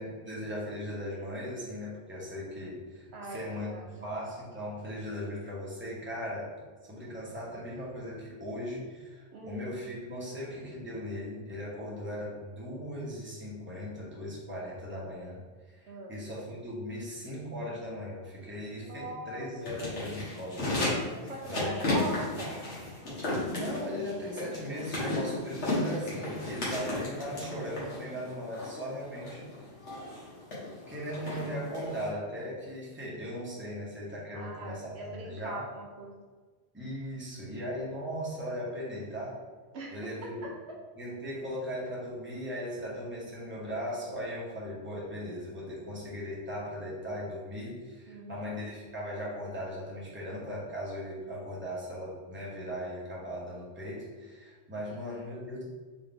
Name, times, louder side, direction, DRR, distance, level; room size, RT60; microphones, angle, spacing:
voice 1, 0.0-6.5 6.9-20.8 21.1-22.1 23.2-29.7 30.9-35.6 36.7-39.4 39.9-40.4 41.0-55.6, equal, 10° right, -7 dB, 1.0 m, -38 dB
voice 2, 3.1-4.1 9.3-9.7 15.9-16.2 18.8-19.5 21.0-22.6 34.3-36.2 39.7-40.1 40.4-40.5 48.1-48.5, right 2 dB, 70° right, -2 dB, 1.0 m, -41 dB
sound 1, 19.6-32.1, left 2 dB, 85° left, 1.6 m, -35 dB
3.8 x 3.1 x 3.5 m, 1.4 s
omnidirectional pair, 1.1 m